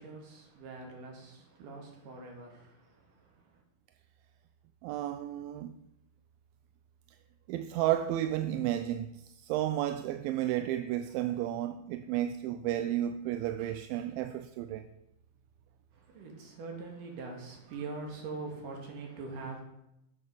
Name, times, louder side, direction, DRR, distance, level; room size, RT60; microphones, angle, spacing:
voice 1, 0.0-3.6 15.9-19.6, right 3 dB, 60° right, 3.6 m, -43 dB
voice 2, 4.8-5.7 7.5-14.9, right 12 dB, 80° right, 2.2 m, -32 dB
12.5 x 7.8 x 5.4 m
omnidirectional pair, 4.4 m